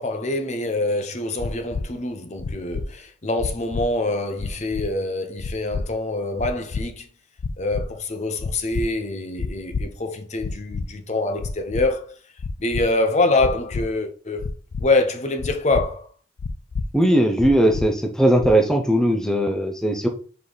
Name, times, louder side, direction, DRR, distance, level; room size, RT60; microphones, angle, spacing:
voice 1, 0.0-7.1 7.6-12.0 12.6-14.5 14.8-16.1, left 2 dB, 35° left, 0.8 m, -25 dB
sound 1, 1.4-1.8 2.4-2.8 3.4-3.8 4.4-4.9 5.4-5.8 6.4-6.8 7.4-7.8 8.4-8.8 9.4-9.8 10.4-10.8 11.4-11.8 12.4-12.8 13.4-13.8 14.4-14.8 15.4-15.8 16.4-16.8 17.4-17.8 18.4-18.7, left 4 dB, 85° left, 0.5 m, -28 dB
voice 2, 16.9-20.1, right 1 dB, 5° left, 0.7 m, -19 dB
5.5 x 5.0 x 4.0 m
head